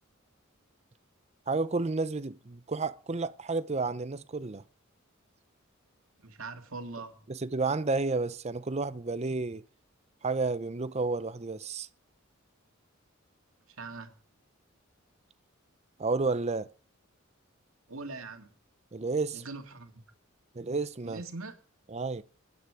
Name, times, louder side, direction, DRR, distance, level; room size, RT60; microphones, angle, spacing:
voice 1, 1.5-4.6 7.3-9.6 10.2-11.9 16.0-16.7 18.9-19.4 20.5-21.2 21.9-22.2, right 3 dB, 30° right, 0.6 m, -31 dB
voice 2, 6.2-7.2 13.7-14.2 17.9-18.5 19.3-19.9 21.0-21.6, right 3 dB, 80° right, 2.2 m, -41 dB
24.0 x 9.5 x 4.9 m
head